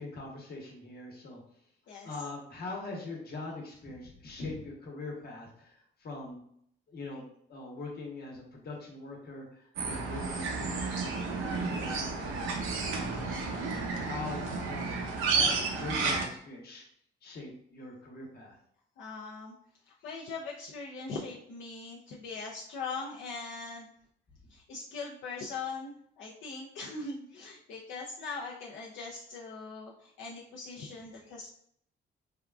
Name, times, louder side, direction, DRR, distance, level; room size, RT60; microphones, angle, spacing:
voice 1, 0.0-1.4 2.0-5.7 6.0-6.4 6.9-12.3 12.8-14.4 14.7-16.8 17.2-18.5, left 2 dB, 50° left, -1 dB, 1.0 m, -42 dB
voice 2, 1.9-2.2 19.0-19.6 19.9-23.9 24.5-31.5, left 4 dB, 75° left, -4 dB, 0.5 m, -41 dB
sound 1, 9.8-16.3, right 4 dB, 80° right, 0.6 m, -32 dB
3.5 x 2.3 x 2.3 m, 0.69 s
cardioid pair, 90°, 20 cm